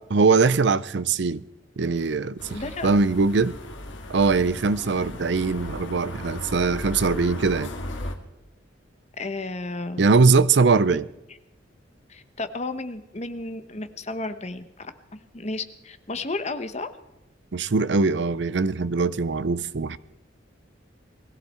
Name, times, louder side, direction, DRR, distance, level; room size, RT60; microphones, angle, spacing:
voice 1, 0.1-1.4 1.8-3.5 4.1-7.7 10.0-11.0 17.5-20.0, right 4 dB, 65° right, 0.5 m, -21 dB
sound 1, 2.4-8.1, left 1 dB, 85° left, 2.0 m, -36 dB
voice 2, 2.5-2.9 9.2-10.1 10.9-11.0 12.1-16.9, left 2 dB, 35° left, 1.1 m, -33 dB
21.0 x 15.5 x 4.4 m
head